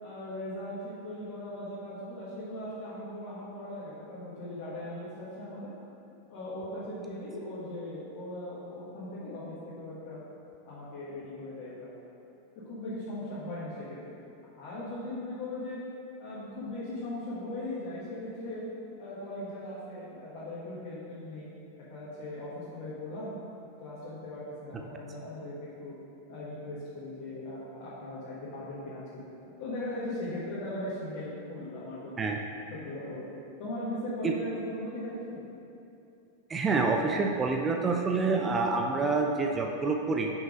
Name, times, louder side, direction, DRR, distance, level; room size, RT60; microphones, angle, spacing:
voice 1, 0.0-5.7 6.3-10.2 10.6-11.9 12.7-14.2 14.5-15.8 16.2-18.6 19.0-21.5 21.9-23.3 23.8-25.9 26.3-32.1 32.7-33.3 33.6-35.4, left 1 dB, 45° left, -9 dB, 1.6 m, -39 dB
voice 2, 36.5-40.3, right 4 dB, 20° right, 2 dB, 0.5 m, -27 dB
5.7 x 5.4 x 5.0 m, 2.7 s
figure-of-eight pair, 90°, 0 cm